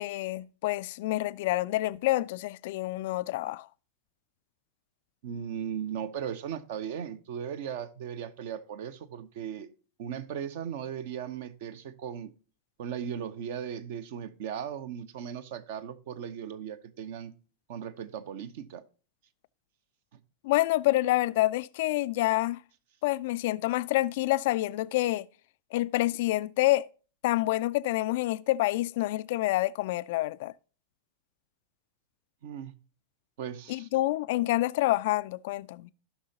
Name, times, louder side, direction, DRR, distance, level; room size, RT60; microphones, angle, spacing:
voice 1, 0.0-3.7 20.4-22.6 23.0-25.3 25.7-26.9 27.2-30.5 33.7-35.9, left 17 dB, 50° left, 0.3 m, -27 dB
voice 2, 5.2-9.7 10.0-12.3 12.8-17.3 17.7-18.8 20.1-20.2 32.4-32.7 33.4-33.9, right 8 dB, 55° right, 0.8 m, -37 dB
15.5 x 5.8 x 2.8 m
figure-of-eight pair, 90°, 0 cm